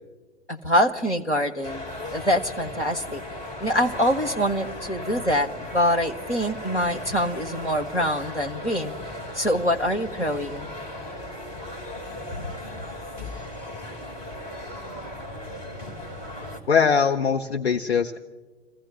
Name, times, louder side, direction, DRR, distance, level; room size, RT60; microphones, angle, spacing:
voice 1, 0.5-1.8 2.1-3.2 3.6-8.9 9.3-10.7 12.3-12.5, equal, 85° left, 2 dB, 1.8 m, -25 dB
sound 1, 1.6-16.6, left 1 dB, 40° left, 3.5 m, -37 dB
voice 2, 16.7-18.2, left 6 dB, 65° left, 6 dB, 0.9 m, -21 dB
28.5 x 16.0 x 2.9 m, 1.3 s
figure-of-eight pair, 115°, 34 cm